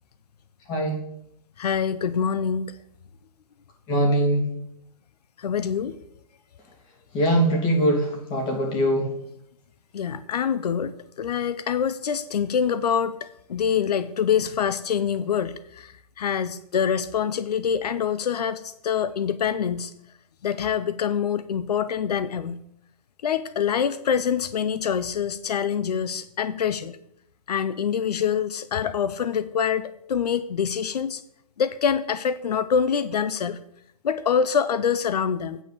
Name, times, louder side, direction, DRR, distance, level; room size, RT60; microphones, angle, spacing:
voice 1, 1.6-2.7 5.4-6.0 9.9-13.2 13.5-19.9 20.4-22.6 23.2-27.0 27.5-31.2 31.6-33.6 34.0-35.6, left 7 dB, 85° left, 15 dB, 0.6 m, -25 dB
voice 2, 3.9-4.4 7.1-9.1, right 1 dB, 20° left, 1 dB, 2.5 m, -22 dB
8.8 x 5.4 x 6.9 m, 0.75 s
hypercardioid pair, 160°, 20 cm